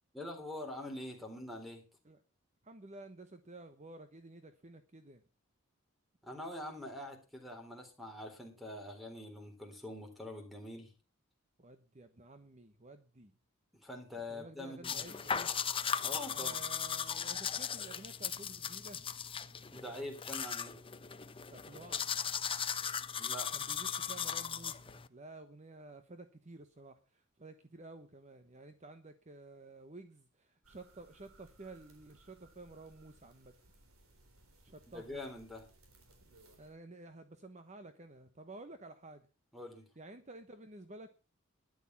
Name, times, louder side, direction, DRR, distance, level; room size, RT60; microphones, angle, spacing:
voice 1, 0.1-1.9 6.2-10.9 13.7-15.0 16.0-16.6 19.7-20.8 23.2-23.5 34.9-35.6 39.5-39.9, left 1 dB, ahead, 4 dB, 3.8 m, -44 dB
voice 2, 2.6-5.2 11.6-13.3 14.3-15.6 16.3-19.0 21.5-22.1 23.5-33.5 34.6-35.2 36.6-39.3 40.0-41.1, right 2 dB, 35° right, 9 dB, 1.1 m, -52 dB
sound 1, 14.8-25.1, left 7 dB, 25° left, 0.7 m, -37 dB
sound 2, 30.6-36.7, right 2 dB, 75° right, 3.9 m, -64 dB
12.5 x 11.0 x 5.8 m, 0.33 s
head